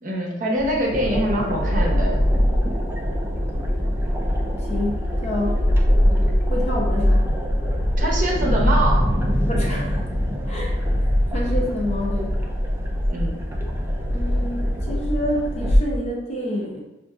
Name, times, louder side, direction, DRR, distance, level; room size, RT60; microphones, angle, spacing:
voice 1, 0.0-2.2 8.0-9.1 13.1-13.4, right 1 dB, 40° right, -2 dB, 0.7 m, -24 dB
sound 1, 0.6-15.8, left 1 dB, 10° left, 0.9 m, -34 dB
sound 2, 0.9-15.8, equal, 10° right, 0.3 m, -22 dB
voice 2, 4.7-5.6 6.5-7.2 9.5-10.0 10.5-10.8 11.3-12.3 14.1-16.8, left 1 dB, 35° left, -2 dB, 0.7 m, -28 dB
5.6 x 2.5 x 2.4 m, 1.0 s
head